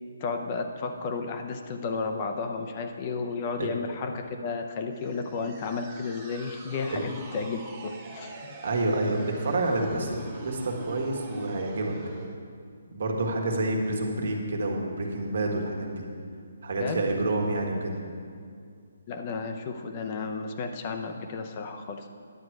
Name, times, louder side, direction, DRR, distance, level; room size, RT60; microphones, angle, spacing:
voice 1, 0.2-8.3 16.8-17.0 19.1-22.1, left 4 dB, 30° left, 5 dB, 0.6 m, -33 dB
sound 1, 4.9-12.4, right 4 dB, 20° right, 1.0 m, -44 dB
voice 2, 8.6-11.9 12.9-16.0 16.6-18.0, right 2 dB, 65° right, 1 dB, 1.6 m, -28 dB
10.5 x 7.8 x 4.7 m, 2.3 s
hypercardioid pair, 165°, 0 cm